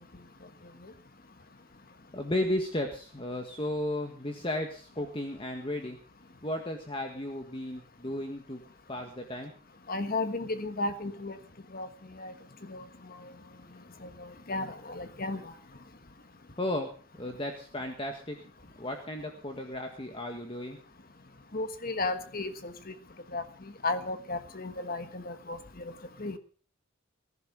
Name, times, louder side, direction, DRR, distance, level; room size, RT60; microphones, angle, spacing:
voice 1, 2.1-6.0 6.4-8.6 8.9-9.5 16.6-16.9 17.2-18.4 18.8-20.8, left 1 dB, 25° left, 4 dB, 1.7 m, -34 dB
voice 2, 9.9-11.4 11.7-11.9 12.2-12.3 12.7-12.8 13.2-13.3 14.0-15.5 21.5-22.7 23.3-23.4 23.8-25.9 26.2-26.4, left 2 dB, 45° left, 9 dB, 1.4 m, -34 dB
19.0 x 11.5 x 5.4 m, 0.41 s
head